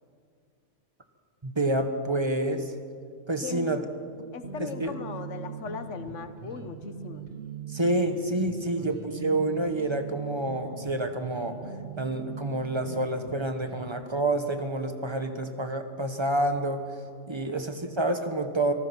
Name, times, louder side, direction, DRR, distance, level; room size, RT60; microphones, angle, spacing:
voice 1, 1.4-2.7 3.3-3.8 4.6-4.9 7.7-11.6 12.0-16.9 17.3-18.7, right 1 dB, 25° right, 7 dB, 1.4 m, -28 dB
voice 2, 3.4-3.9 4.3-7.2 8.7-8.9 17.4-17.6, left 5 dB, 90° left, 10 dB, 1.4 m, -39 dB
sound 1, 4.4-14.0, right 7 dB, 50° right, 1.5 m, -41 dB
25.5 x 18.5 x 6.0 m, 2.2 s
omnidirectional pair, 1.2 m